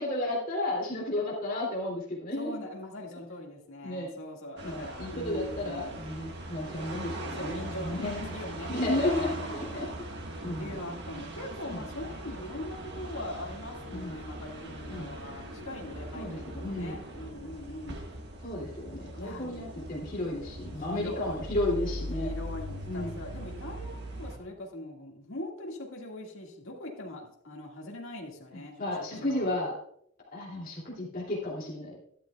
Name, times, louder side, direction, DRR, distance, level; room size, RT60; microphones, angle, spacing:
voice 1, 0.0-2.6 3.8-4.1 4.6-8.3 8.7-9.9 10.4-10.7 11.7-11.8 13.9-14.1 14.9-15.1 16.1-17.0 18.4-22.3 22.9-23.1 28.5-29.7 30.3-32.0, left 1 dB, 40° left, -3 dB, 2.7 m, -33 dB
voice 2, 2.4-6.0 7.3-9.9 10.6-18.0 19.2-19.7 20.7-21.4 22.2-28.8 29.1-29.6, left 1 dB, 60° left, 0 dB, 2.0 m, -41 dB
sound 1, 4.6-24.4, right 1 dB, 50° right, 1.6 m, -40 dB
12.5 x 12.0 x 2.3 m, 0.69 s
head